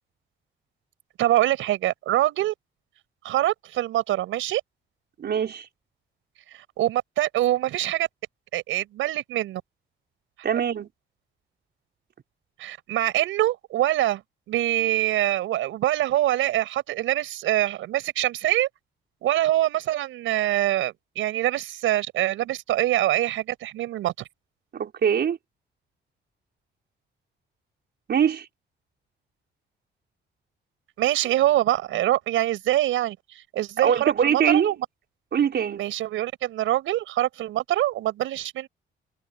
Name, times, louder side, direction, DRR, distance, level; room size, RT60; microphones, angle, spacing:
voice 1, 1.2-2.5 3.2-4.6 6.8-8.1 8.5-9.6 12.6-14.2 14.5-18.7 19.2-24.1 31.0-34.9 35.8-38.7, right 14 dB, 85° right, 6.0 m, -24 dB
voice 2, 5.2-5.7 10.4-10.9 24.7-25.4 28.1-28.5 33.8-34.7 35.3-35.8, right 8 dB, 55° right, 5.0 m, -23 dB
cardioid pair, 90°, 20 cm